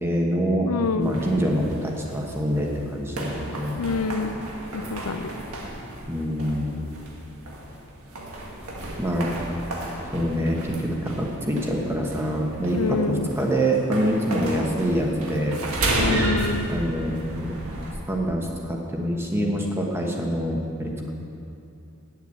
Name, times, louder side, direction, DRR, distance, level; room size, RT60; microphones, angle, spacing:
voice 1, 0.0-0.7 1.0-3.8 6.1-6.8 9.0-9.3 10.1-15.6 16.7-17.5 18.1-21.1, equal, 10° right, 0 dB, 1.2 m, -25 dB
voice 2, 0.7-1.2 3.8-4.4 4.7-5.3 12.7-13.3 16.0-16.7, left 3 dB, 80° left, 9 dB, 0.6 m, -26 dB
sound 1, 1.0-17.9, right 1 dB, 70° right, 1.8 m, -32 dB
8.9 x 8.1 x 8.4 m, 2.6 s
head